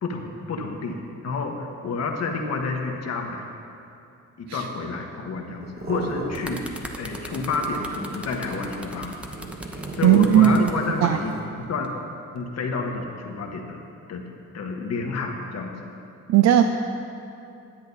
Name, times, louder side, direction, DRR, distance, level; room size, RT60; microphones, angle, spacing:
voice 1, 0.0-3.5 4.4-6.6 6.9-9.1 9.9-11.9 12.3-13.8 14.1-14.2 14.5-15.9, left 4 dB, 60° left, 2 dB, 1.3 m, -29 dB
sound 1, 5.6-6.9 7.1-11.5, right 2 dB, 30° right, 1.2 m, -37 dB
sound 2, 6.3-10.8 11.6-11.9, equal, 5° right, 0.9 m, -39 dB
voice 2, 10.0-10.6 11.0-11.2 16.3-16.6, right 11 dB, 65° right, 7 dB, 0.5 m, -16 dB
10.5 x 8.4 x 4.1 m, 2.7 s
cardioid pair, 90°, 30 cm